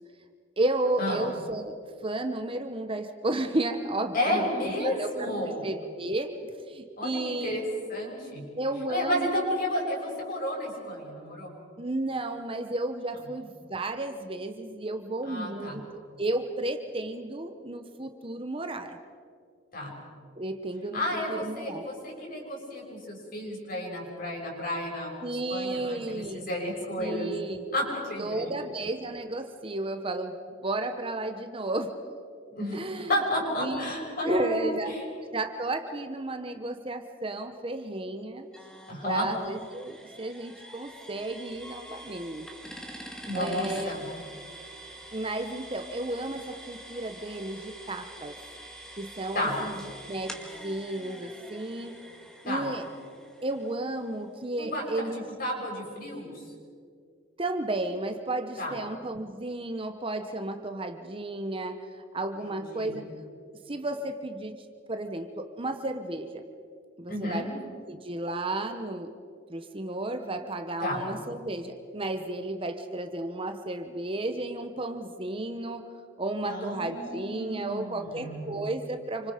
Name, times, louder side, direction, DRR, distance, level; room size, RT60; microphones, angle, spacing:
voice 1, 0.6-7.6 8.6-9.4 11.8-19.0 20.4-21.0 21.3-21.9 25.2-26.5 27.0-27.6 28.2-32.0 32.7-33.1 33.6-33.9 34.2-34.9 35.3-38.5 39.0-42.7 43.3-44.0 45.1-48.4 49.0-51.9 52.4-52.8 53.4-55.2 57.4-63.1 63.7-64.6 64.9-66.4 67.0-67.5 67.9-69.1 69.5-75.9 76.2-79.3, right 2 dB, 30° right, 7 dB, 1.1 m, -33 dB
voice 2, 4.1-5.6 7.0-7.6 7.9-8.4 8.9-11.5 15.3-15.8 19.7-19.9 20.9-25.1 25.5-27.3 27.7-28.5 32.5-34.7 34.9-35.0 38.9-39.3 43.2-44.1 49.3-49.6 52.4-52.7 54.6-54.8 55.4-56.4 58.6-58.7 62.4-63.0 67.1-67.5 70.8-71.0 76.4-78.6, left 1 dB, 50° left, -1 dB, 6.9 m, -32 dB
sound 1, 38.5-54.2, right 1 dB, 5° left, 2.1 m, -46 dB
28.5 x 26.0 x 5.2 m, 2.3 s
head